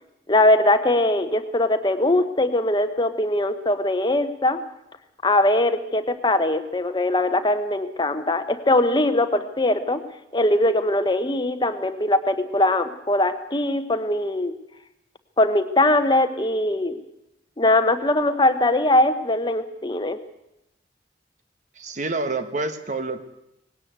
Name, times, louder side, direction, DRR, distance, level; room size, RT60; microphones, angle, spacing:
voice 1, 0.3-4.6 5.2-10.0 10.3-14.5 15.4-17.0 17.6-20.2, left 1 dB, 25° left, 10 dB, 1.0 m, -21 dB
voice 2, 21.8-23.3, right 3 dB, 45° right, 9 dB, 1.4 m, -28 dB
19.5 x 17.5 x 8.1 m, 0.86 s
head